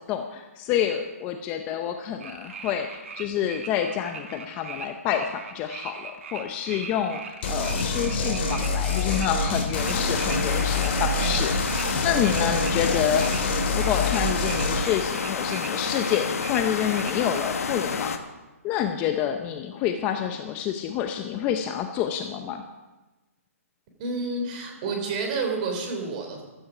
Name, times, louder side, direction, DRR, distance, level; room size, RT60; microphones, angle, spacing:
voice 1, 0.0-18.1 18.6-22.6, left 9 dB, 20° left, 6 dB, 0.7 m, -28 dB
sound 1, 2.2-11.9 12.2-17.4, right 6 dB, 55° right, 1.8 m, -40 dB
sound 2, 7.4-14.8, left 2 dB, 40° left, 3.2 m, -26 dB
sound 3, 9.7-18.2, left 5 dB, 70° left, 1.4 m, -30 dB
voice 2, 24.0-26.4, right 3 dB, 30° right, 3 dB, 3.4 m, -29 dB
15.0 x 12.0 x 5.0 m, 1.1 s
hypercardioid pair, 160°, 8 cm